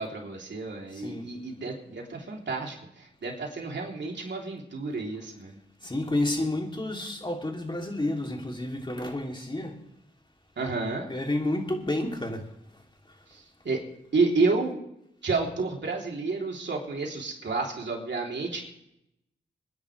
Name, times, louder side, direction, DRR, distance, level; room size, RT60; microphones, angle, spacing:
voice 1, 0.0-5.6 10.6-11.1 13.3-13.8 14.1-14.8 15.2-18.7, right 3 dB, 70° right, 3.3 m, -30 dB
voice 2, 0.9-1.3 5.8-9.8 11.1-12.4, left 1 dB, 25° left, 3.0 m, -30 dB
27.5 x 10.5 x 3.3 m
cardioid pair, 55°, 19 cm